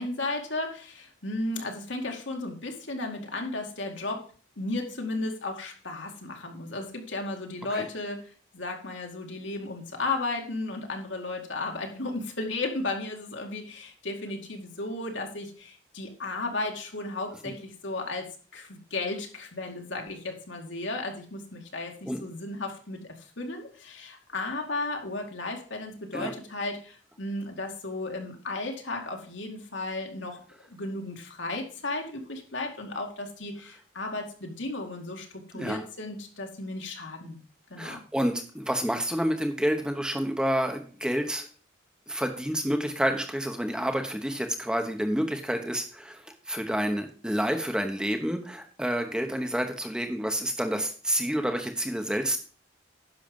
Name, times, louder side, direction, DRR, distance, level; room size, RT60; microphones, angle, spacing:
voice 1, 0.0-4.3 4.6-23.0 23.4-30.4 30.7-37.4 37.7-38.0, left 2 dB, 70° left, 2 dB, 2.2 m, -34 dB
voice 2, 37.8-41.5 42.1-52.4, equal, 5° right, 5 dB, 0.9 m, -29 dB
10.5 x 6.4 x 5.3 m, 0.40 s
head